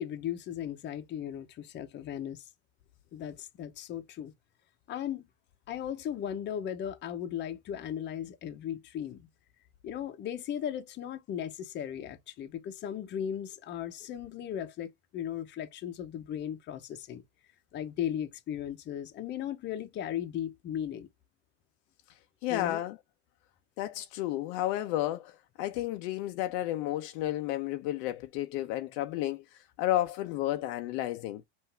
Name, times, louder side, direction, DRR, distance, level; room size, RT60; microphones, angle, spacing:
voice 1, 0.0-2.5 3.1-4.3 4.9-5.3 5.7-9.3 9.8-17.2 17.7-21.1 22.5-22.8, left 10 dB, 30° left, 0.8 m, -37 dB
voice 2, 22.4-23.0 23.8-31.4, left 14 dB, 55° left, 0.7 m, -32 dB
5.7 x 2.7 x 3.3 m
supercardioid pair, 140°, 36 cm